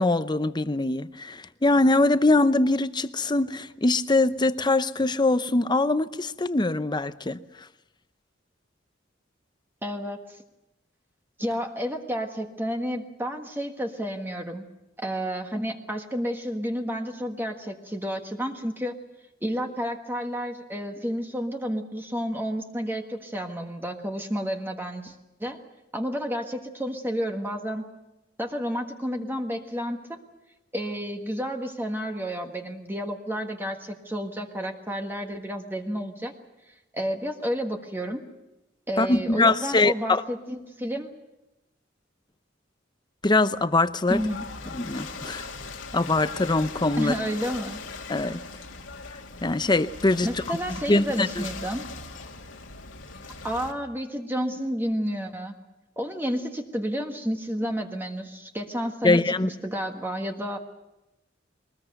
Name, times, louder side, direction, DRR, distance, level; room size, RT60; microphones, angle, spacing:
voice 1, 0.0-7.4 39.0-40.2 43.2-44.2 44.7-45.5 45.9-47.1 48.1-48.4 49.4-50.6 50.9-51.4 59.0-59.5, left 2 dB, 25° left, 0.7 m, -23 dB
voice 2, 9.8-10.2 11.4-14.7 15.0-18.9 19.4-25.1 25.4-25.6 25.9-27.8 28.4-30.2 30.7-36.3 36.9-38.2 38.9-41.1 44.1-44.4 47.0-47.8 50.2-51.8 53.4-55.5 56.0-60.6, equal, 10° right, 1.5 m, -31 dB
Ocean / Boat Water vehicle, 44.1-53.7, left 4 dB, 85° left, 2.3 m, -39 dB
22.5 x 20.0 x 7.9 m
head